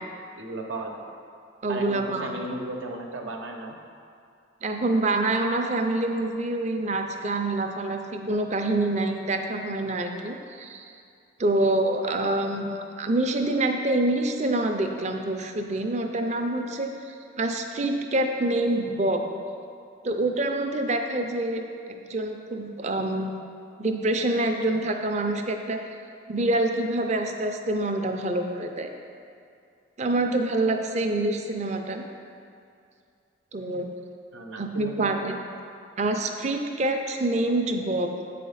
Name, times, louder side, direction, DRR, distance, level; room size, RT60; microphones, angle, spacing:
voice 1, 0.4-0.9 1.7-3.8 34.3-35.3, right 2 dB, 85° right, 2 dB, 0.8 m, -35 dB
voice 2, 1.6-2.3 4.6-10.8 11.4-19.2 20.0-21.6 21.9-23.3 23.8-26.0 26.3-28.9 30.0-32.1 33.5-33.9 34.6-35.3 36.0-38.1, right 2 dB, 35° right, 4 dB, 0.5 m, -26 dB
8.7 x 4.2 x 5.6 m, 2.4 s
head